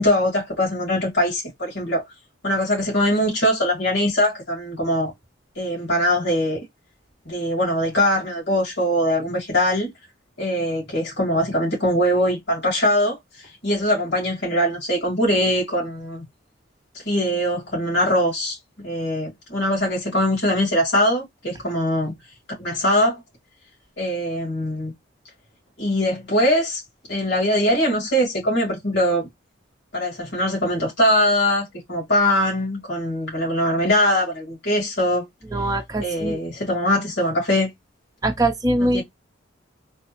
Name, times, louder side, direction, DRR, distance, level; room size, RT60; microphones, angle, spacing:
voice 1, 0.0-2.0 2.4-5.1 5.6-6.6 7.3-9.9 10.4-16.2 17.1-18.6 18.8-22.1 22.6-23.2 24.0-24.9 25.8-26.8 27.1-29.3 29.9-35.3 36.0-37.7 38.8-39.0, equal, 60° left, 1.9 m, -22 dB
voice 2, 35.5-36.4 38.2-39.0, right 1 dB, 20° right, 0.6 m, -22 dB
3.4 x 2.0 x 2.8 m
head